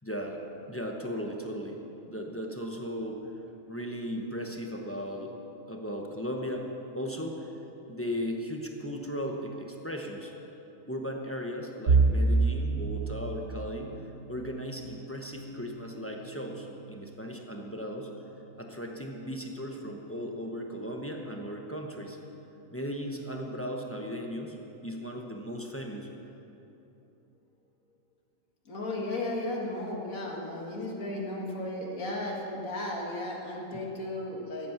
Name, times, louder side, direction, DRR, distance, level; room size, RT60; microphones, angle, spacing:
voice 1, 0.0-1.8 2.1-3.2 3.7-5.3 5.7-6.7 6.9-7.5 7.9-10.3 10.9-13.9 14.3-18.1 18.6-22.2 22.7-24.6 24.8-26.1 33.7-33.9, equal, 10° left, 1 dB, 0.8 m, -36 dB
sound 1, 11.9-23.7 24.1-24.4 24.7-24.9 25.8-26.3, right 3 dB, 85° right, 1.5 m, -32 dB
voice 2, 28.7-34.7, left 1 dB, 70° left, -2 dB, 2.2 m, -35 dB
14.5 x 8.4 x 5.9 m, 3.0 s
omnidirectional pair, 1.5 m